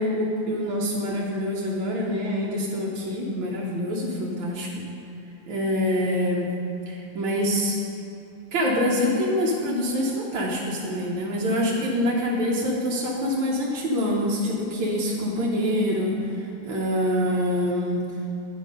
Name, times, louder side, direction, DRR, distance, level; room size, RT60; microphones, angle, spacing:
voice 1, 0.0-4.7 5.5-6.5 6.9-7.8 8.5-18.0, left 1 dB, 80° right, -5 dB, 1.7 m, -25 dB
9.6 x 5.5 x 5.2 m, 2.8 s
omnidirectional pair, 2.2 m